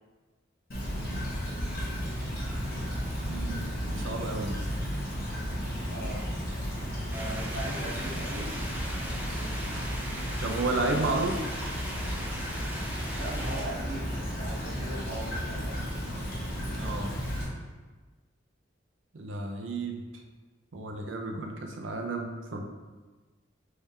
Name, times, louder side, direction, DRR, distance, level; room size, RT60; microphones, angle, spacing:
Stream / Trickle dribble, 0.7-17.4, equal, 50° left, 1.4 m, -33 dB
voice 1, 3.3-4.6 10.4-11.4 16.7-17.1 19.1-20.0 20.7-22.6, right 2 dB, 75° right, 3 dB, 0.6 m, -32 dB
voice 2, 5.9-6.3 7.1-8.6 13.1-15.8, right 1 dB, 55° right, -5 dB, 1.1 m, -39 dB
sound 1, 7.1-13.6, right 1 dB, 10° right, 0.6 m, -40 dB
3.6 x 3.4 x 4.2 m, 1.3 s
head